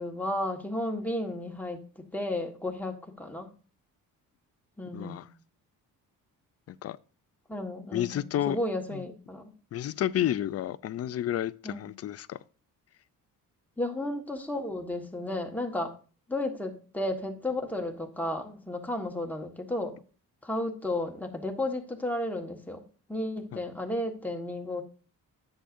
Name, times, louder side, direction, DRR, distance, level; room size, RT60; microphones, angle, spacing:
voice 1, 0.0-3.5 4.8-5.3 7.5-9.5 11.6-11.9 13.8-15.9 16.3-20.0 20.4-22.8 23.1-24.8, left 1 dB, 5° left, 1.5 m, -33 dB
voice 2, 4.9-5.3 6.7-7.0 7.9-8.6 8.9-9.0 9.7-12.4 23.5-23.6, left 11 dB, 45° left, 0.4 m, -31 dB
10.0 x 7.9 x 2.6 m
cardioid pair, 105°, 36 cm